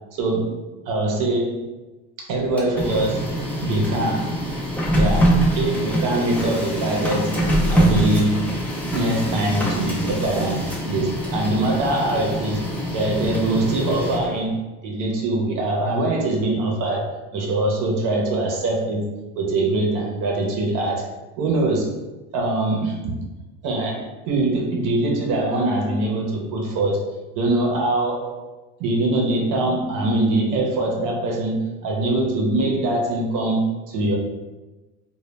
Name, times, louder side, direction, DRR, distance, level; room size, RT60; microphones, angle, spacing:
voice 1, 0.2-0.6 0.9-1.7 2.2-3.3 3.6-4.5 4.9-7.4 7.7-8.6 8.9-19.1 19.4-21.0 21.4-22.0 22.3-23.2 23.6-27.1 27.3-28.4 28.8-34.1, right 2 dB, 55° right, -1 dB, 0.6 m, -23 dB
Printer, 2.4-14.5, right 1 dB, 5° left, 0.3 m, -24 dB
2.2 x 2.0 x 3.2 m, 1.1 s
cardioid pair, 120°, 37 cm